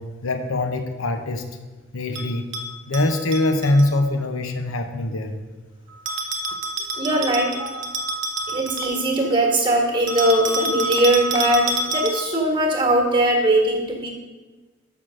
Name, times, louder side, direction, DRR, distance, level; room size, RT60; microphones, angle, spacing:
voice 1, 0.0-1.5 1.9-2.5 2.9-5.3, left 2 dB, 75° left, 7 dB, 0.8 m, -23 dB
Bell, 2.1-3.9 6.1-9.3 10.1-12.5, right 2 dB, 60° right, 0.9 m, -28 dB
voice 2, 7.0-7.8 8.5-14.1, right 1 dB, 25° right, 1 dB, 1.4 m, -20 dB
6.2 x 5.8 x 6.4 m, 1.3 s
head